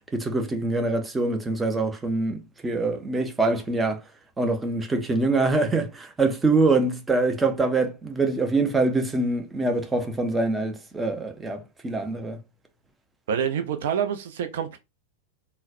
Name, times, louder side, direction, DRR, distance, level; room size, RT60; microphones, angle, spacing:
voice 1, 0.1-4.0 4.4-12.4, right 3 dB, 10° right, 0.6 m, -24 dB
voice 2, 13.3-14.8, right 8 dB, 55° right, 0.4 m, -27 dB
3.9 x 2.0 x 2.5 m
figure-of-eight pair, 90°, 0 cm